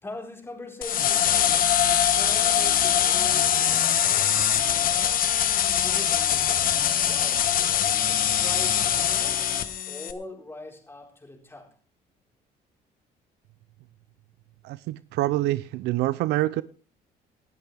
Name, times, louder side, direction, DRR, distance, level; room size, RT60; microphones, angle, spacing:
voice 1, 0.0-1.5 1.8-4.9 5.7-7.4 8.1-11.7, left 2 dB, 15° left, 4.7 m, -42 dB
sound 1, 0.8-10.1, left 10 dB, 55° left, 1.5 m, -23 dB
voice 2, 14.6-16.6, right 16 dB, 85° right, 0.5 m, -26 dB
19.5 x 12.5 x 3.5 m
cardioid pair, 110°, 17 cm